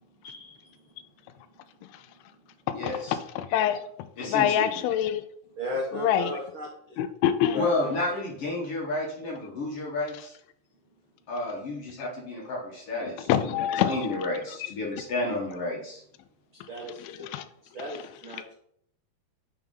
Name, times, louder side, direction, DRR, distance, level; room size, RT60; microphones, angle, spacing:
voice 1, 0.2-0.7 2.7-3.2 4.2-4.8 7.5-10.3 11.3-16.0, left 2 dB, 55° left, -3 dB, 1.7 m, -31 dB
voice 2, 3.4-3.8 4.3-5.2 5.9-6.3 7.0-7.6 13.3-14.2 14.6-14.7 17.0-17.4, left 10 dB, 85° left, 11 dB, 2.4 m, -25 dB
voice 3, 5.6-7.0 7.5-7.9 16.7-17.3 17.6-18.5, left 1 dB, 75° right, -3 dB, 1.1 m, -35 dB
6.9 x 3.4 x 5.3 m, 0.68 s
omnidirectional pair, 4.4 m